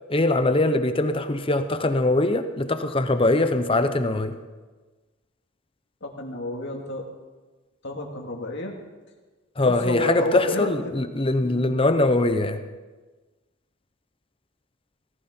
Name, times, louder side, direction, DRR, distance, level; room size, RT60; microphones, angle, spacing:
voice 1, 0.1-4.4 9.6-12.6, left 2 dB, 25° left, 9 dB, 0.8 m, -22 dB
voice 2, 6.0-7.1 7.8-8.7 9.6-10.9 11.4-11.6, left 2 dB, 60° left, 1 dB, 2.3 m, -30 dB
17.5 x 15.0 x 4.5 m, 1.3 s
head